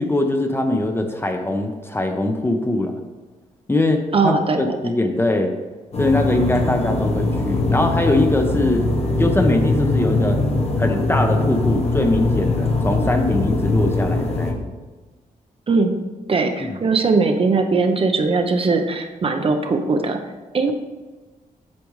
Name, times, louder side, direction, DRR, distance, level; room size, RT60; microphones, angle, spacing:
voice 1, 0.0-3.0 3.7-5.5 6.0-8.9 9.2-10.4 10.8-14.7 16.6-16.8, left 2 dB, 15° left, 4 dB, 0.7 m, -21 dB
voice 2, 4.1-4.8 15.7-16.0 16.3-20.2 20.5-20.7, right 4 dB, 40° right, 5 dB, 0.6 m, -20 dB
sound 1, 5.9-14.5, left 2 dB, 45° left, 1.0 m, -21 dB
8.4 x 5.1 x 3.1 m, 1.3 s
cardioid pair, 105°, 15 cm